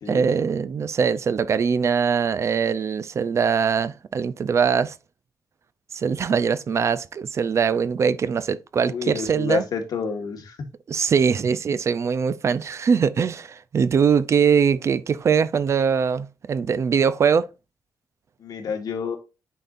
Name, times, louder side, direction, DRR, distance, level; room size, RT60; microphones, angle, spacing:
voice 1, 0.1-4.9 5.9-9.6 10.9-17.5, right 6 dB, 40° right, 0.4 m, -22 dB
voice 2, 8.8-10.6 18.4-19.2, left 5 dB, 60° left, 1.5 m, -29 dB
9.0 x 4.2 x 2.5 m
wide cardioid pair, 155°, 7 cm